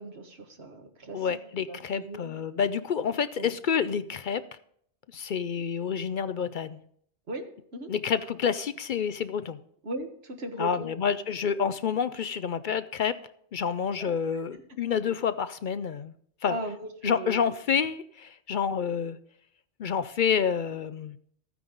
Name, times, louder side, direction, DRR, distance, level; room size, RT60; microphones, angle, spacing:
voice 1, 0.0-1.3 1.7-2.4 3.4-3.5 7.3-7.4 7.7-7.9 9.8-11.0 14.0-14.1 14.5-14.6 16.5-17.4, right 1 dB, 65° right, 5 dB, 1.6 m, -37 dB
voice 2, 1.1-4.4 5.1-6.8 7.9-9.6 10.6-13.1 13.5-16.1 16.4-16.6 17.0-19.2 19.8-21.2, left 7 dB, 55° left, 13 dB, 0.6 m, -28 dB
14.5 x 9.4 x 3.9 m, 0.66 s
omnidirectional pair, 1.2 m